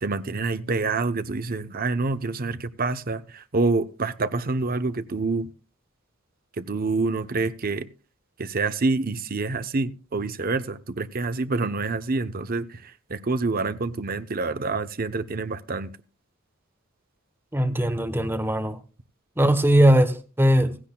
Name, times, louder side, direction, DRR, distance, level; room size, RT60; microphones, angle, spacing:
voice 1, 0.0-5.5 6.6-7.9 8.4-15.9, right 3 dB, 45° right, 0.8 m, -27 dB
voice 2, 17.5-18.8 19.4-20.8, right 1 dB, 10° right, 1.1 m, -20 dB
16.0 x 15.5 x 2.3 m
head